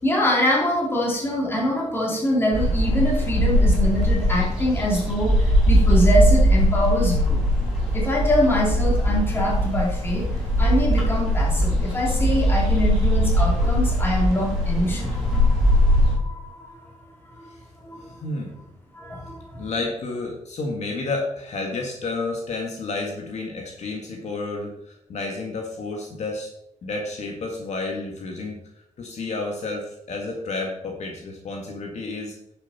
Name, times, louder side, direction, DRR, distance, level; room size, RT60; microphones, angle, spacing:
voice 1, 0.0-7.4 7.9-10.3 10.6-16.7 17.3-17.5 17.8-18.2 18.9-19.7, equal, 20° left, -3 dB, 3.1 m, -24 dB
sound 1, 2.5-16.1, equal, ahead, 4.4 m, -20 dB
voice 2, 18.1-18.5 19.6-26.5 26.8-28.6 29.0-32.3, left 3 dB, 60° left, 1 dB, 1.8 m, -31 dB
10.5 x 7.2 x 4.2 m, 0.77 s
wide cardioid pair, 140°, 13 cm